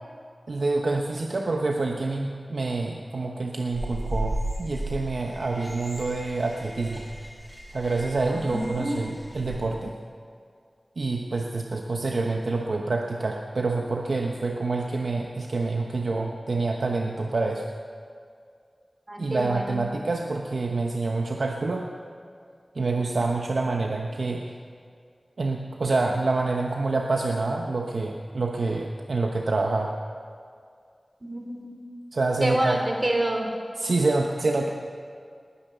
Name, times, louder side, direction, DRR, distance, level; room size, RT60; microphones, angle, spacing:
voice 1, 0.5-7.0 7.7-10.0 11.0-17.7 19.2-21.9 22.8-24.4 25.4-29.9 32.1-32.8 33.8-34.7, right 3 dB, 80° right, 1 dB, 1.0 m, -27 dB
sound 1, 3.7-9.6, right 1 dB, 5° right, 5.5 m, -35 dB
voice 2, 8.3-9.2 19.1-19.8 31.2-31.7 32.4-33.5, right 1 dB, 35° right, 1 dB, 3.7 m, -27 dB
19.5 x 10.0 x 6.8 m, 2.2 s
wide cardioid pair, 50°, 0 cm